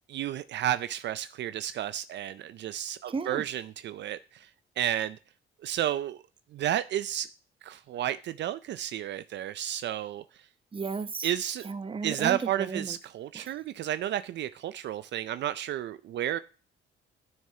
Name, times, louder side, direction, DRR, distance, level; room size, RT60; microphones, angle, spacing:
voice 1, 0.1-4.5 4.8-5.2 5.6-6.2 6.5-7.3 7.6-10.2 11.2-11.7 12.0-16.4, right 11 dB, 65° right, 0.4 m, -32 dB
voice 2, 3.1-3.4 10.7-11.3 11.6-13.0 13.3-13.5, right 5 dB, 25° right, 0.8 m, -34 dB
10.5 x 6.4 x 2.8 m
cardioid pair, 90°, 20 cm